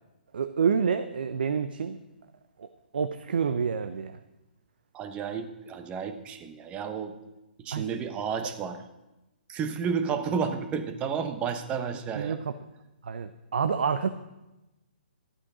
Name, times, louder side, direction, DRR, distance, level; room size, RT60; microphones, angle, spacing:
voice 1, 0.3-2.0 2.6-2.7 2.9-4.2 7.7-7.8 12.2-12.5 13.0-14.1, right 6 dB, 65° right, 10 dB, 0.6 m, -28 dB
voice 2, 4.9-7.1 7.6-8.8 9.5-12.3, right 6 dB, 20° right, 8 dB, 1.0 m, -31 dB
12.5 x 8.5 x 4.9 m, 1.0 s
figure-of-eight pair, 130°, 6 cm